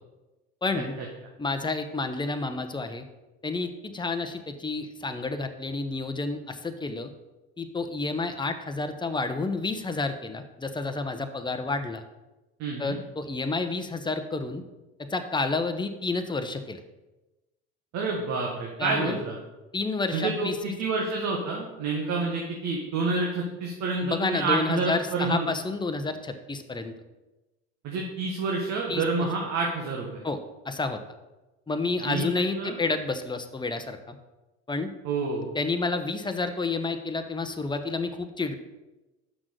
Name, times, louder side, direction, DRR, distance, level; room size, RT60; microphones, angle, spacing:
voice 1, 0.6-0.9 1.4-3.0 3.4-7.1 7.6-12.0 12.8-14.6 15.0-16.8 18.8-19.2 19.7-20.7 24.0-26.9 28.9-29.3 30.2-30.4 30.6-31.0 31.7-34.2 34.7-34.9 35.5-38.6, left 3 dB, 15° left, 8 dB, 1.0 m, -30 dB
voice 2, 12.6-13.0 17.9-19.4 20.1-25.5 27.8-30.2 32.0-32.3 32.5-32.8 35.0-35.5, right 3 dB, 60° right, -1 dB, 1.6 m, -28 dB
6.2 x 6.1 x 6.6 m, 1.1 s
hypercardioid pair, 70°, 32 cm